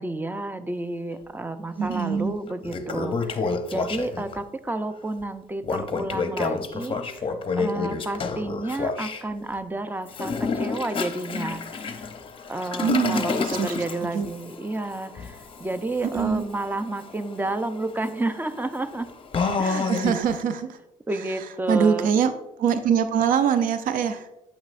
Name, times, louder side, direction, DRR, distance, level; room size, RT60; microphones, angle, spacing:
voice 1, 0.0-12.1 12.5-19.1 19.6-19.9 21.1-22.1, right 2 dB, 10° right, 11 dB, 0.5 m, -31 dB
voice 2, 1.8-2.3 12.8-13.8 14.1-14.3 16.0-16.4 19.6-20.8 21.2-22.3 22.6-24.3, right 7 dB, 65° right, 10 dB, 0.5 m, -24 dB
Toilet flush, 1.9-2.0 2.5-4.4 5.6-9.2 10.1-20.4, left 4 dB, 35° left, 0.7 m, -30 dB
8.4 x 6.1 x 2.5 m, 0.90 s
supercardioid pair, 75°, 15 cm